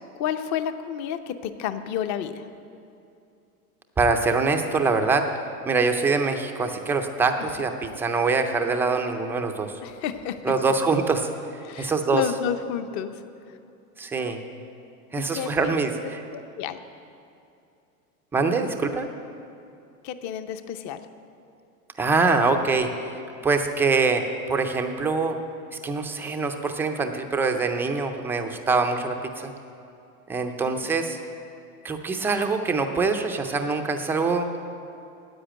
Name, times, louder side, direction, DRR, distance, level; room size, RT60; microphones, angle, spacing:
voice 1, 0.0-2.5 9.8-10.5 11.6-13.2 13.5-13.6 14.2-14.3 15.2-15.7 16.3-16.8 20.0-21.0 30.6-30.7, left 9 dB, 40° left, 10 dB, 0.7 m, -31 dB
voice 2, 4.0-5.3 5.7-9.7 10.4-11.3 11.8-12.2 14.0-14.4 15.1-16.2 18.3-19.1 22.0-22.9 23.4-24.2 24.5-25.4 25.8-29.5 30.3-31.2 31.8-34.5, right 4 dB, 5° right, 5 dB, 0.3 m, -24 dB
10.0 x 8.3 x 8.8 m, 2.6 s
supercardioid pair, 125°, 45 cm